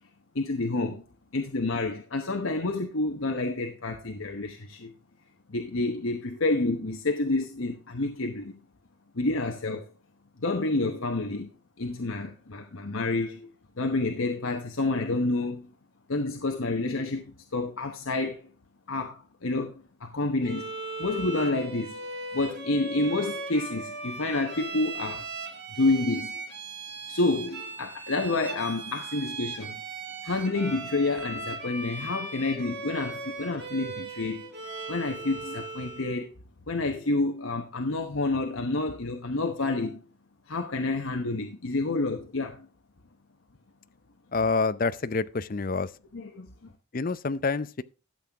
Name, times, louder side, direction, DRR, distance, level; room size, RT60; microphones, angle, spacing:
voice 1, 0.3-1.0 1.3-4.9 5.5-8.6 9.1-9.8 10.4-11.5 11.8-13.5 13.8-15.7 16.1-18.5 18.9-19.7 20.0-22.0 22.3-25.3 25.7-26.3 27.1-29.8 30.2-34.5 34.9-36.3 36.7-40.0 40.5-42.7 46.1-46.5, left 2 dB, 75° left, 1.0 m, -29 dB
Bowed string instrument, 20.4-36.2, right 3 dB, 50° right, 2.7 m, -38 dB
voice 2, 44.3-45.9 46.9-47.8, left 4 dB, 40° left, 0.5 m, -27 dB
13.0 x 7.7 x 3.5 m
head